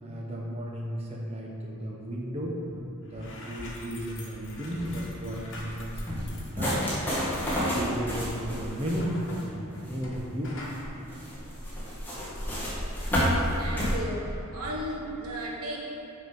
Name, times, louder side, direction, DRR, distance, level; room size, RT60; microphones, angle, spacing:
voice 1, 0.0-2.6 3.0-6.9 7.6-10.8, equal, 30° right, -3 dB, 1.0 m, -34 dB
sound 1, 2.7-2.8 3.0-10.2 10.4-10.8, left 1 dB, 60° left, 1.4 m, -45 dB
sound 2, 4.7-13.9, equal, 10° left, 1.9 m, -31 dB
voice 2, 13.6-15.8, equal, 85° right, -2 dB, 1.4 m, -35 dB
6.8 x 6.6 x 5.3 m, 2.7 s
head